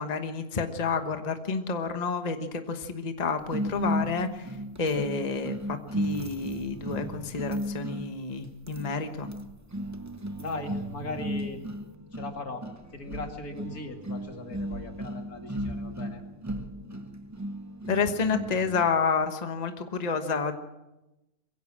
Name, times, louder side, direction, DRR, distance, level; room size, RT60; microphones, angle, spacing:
voice 1, 0.0-4.5 4.8-9.3 17.9-20.5, left 5 dB, 30° left, 7 dB, 1.2 m, -29 dB
sound 1, 3.5-19.0, equal, 15° right, 0.7 m, -35 dB
voice 2, 10.4-11.6 12.1-12.7 12.9-16.2, left 2 dB, 75° left, 4 dB, 2.7 m, -38 dB
sound 2, 13.1-13.4 14.7-15.0 15.5-15.8 16.5-16.8, right 1 dB, 60° right, 1.9 m, -42 dB
23.0 x 16.0 x 7.4 m, 0.97 s
omnidirectional pair, 1.6 m